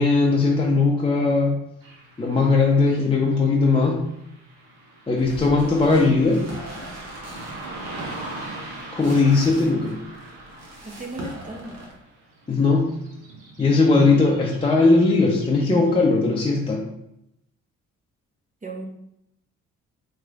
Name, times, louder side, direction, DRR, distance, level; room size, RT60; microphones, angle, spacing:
voice 1, 0.0-1.6 2.2-4.0 5.1-6.5 8.9-10.0 12.5-12.9 13.6-16.8, left 3 dB, 15° left, -2 dB, 0.6 m, -19 dB
Car passing by / Traffic noise roadway noise, 1.8-16.1, right 2 dB, 70° right, 0.9 m, -42 dB
sound 1, 5.2-11.9, right 1 dB, 50° right, 1.1 m, -40 dB
voice 2, 7.5-8.1 10.8-11.8 18.6-18.9, right 2 dB, 20° right, 1 dB, 0.7 m, -37 dB
3.0 x 3.0 x 2.4 m, 0.80 s
hypercardioid pair, 55°, 34 cm